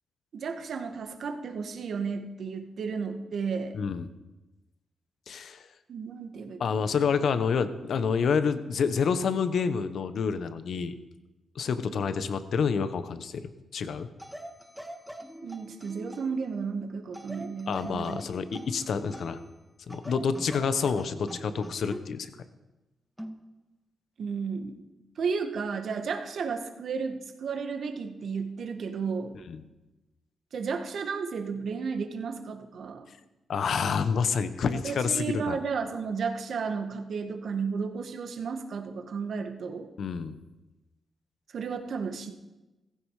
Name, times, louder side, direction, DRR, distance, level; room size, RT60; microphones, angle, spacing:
voice 1, 0.3-3.7 5.9-7.0 15.4-18.2 18.5-18.7 24.2-24.8 25.2-29.3 30.5-33.1 34.7-39.9 41.5-42.3, right 5 dB, 70° right, 6 dB, 1.7 m, -33 dB
voice 2, 3.7-4.1 5.3-5.7 6.6-10.9 11.5-13.4 13.7-14.1 17.7-19.4 19.9-22.3 29.5-29.6 33.5-35.6 40.0-40.4, left 6 dB, 70° left, 11 dB, 1.1 m, -28 dB
sound 1, 14.2-16.4 17.1-19.5 19.9-22.1 23.2-23.4, equal, 5° right, 2.1 m, -43 dB
15.5 x 15.0 x 5.0 m, 1.0 s
supercardioid pair, 50°, 0 cm